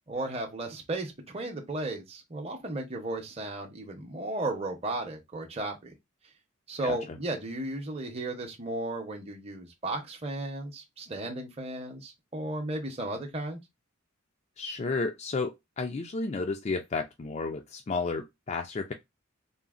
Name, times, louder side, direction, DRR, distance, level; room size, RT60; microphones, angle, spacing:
voice 1, 0.1-5.9 6.7-13.6, right 2 dB, 30° right, 0.7 m, -35 dB
voice 2, 14.6-18.9, left 3 dB, 30° left, 0.3 m, -32 dB
3.8 x 2.0 x 2.4 m
head